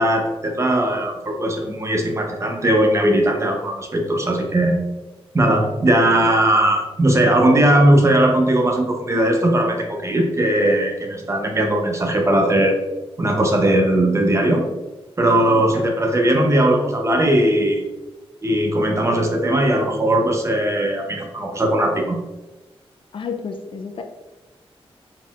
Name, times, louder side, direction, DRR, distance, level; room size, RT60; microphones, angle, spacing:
voice 1, 0.0-4.8 5.3-12.8 13.2-14.6 15.2-17.8 18.4-22.2, right 1 dB, 30° right, 2 dB, 0.7 m, -18 dB
voice 2, 23.1-24.0, left 5 dB, 60° left, 6 dB, 0.4 m, -31 dB
4.3 x 3.9 x 2.4 m, 1.1 s
wide cardioid pair, 115°, 10 cm